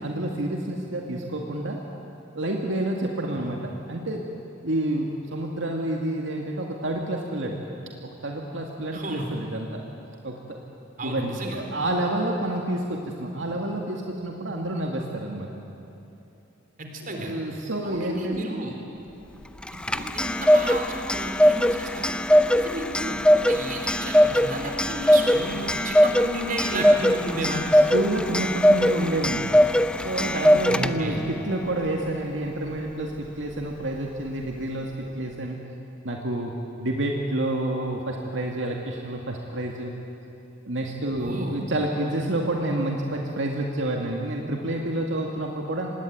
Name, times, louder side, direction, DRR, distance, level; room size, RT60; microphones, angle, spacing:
voice 1, 0.0-1.8 2.4-4.2 4.6-7.6 8.0-9.8 10.2-10.4 11.0-15.5 17.0-18.4 26.7-26.8 27.7-29.5 30.0-35.6 36.0-36.5 36.8-39.9 40.6-45.9, right 1 dB, 75° right, 0 dB, 2.1 m, -29 dB
voice 2, 8.9-9.3 11.0-11.6 16.8-17.3 17.8-18.8 19.9-22.2 22.6-27.6 30.7-31.2 41.2-41.6, right 1 dB, 45° right, 2 dB, 3.9 m, -33 dB
Clock, 19.6-31.2, equal, 5° left, 0.5 m, -21 dB
25.5 x 20.0 x 9.4 m, 3.0 s
head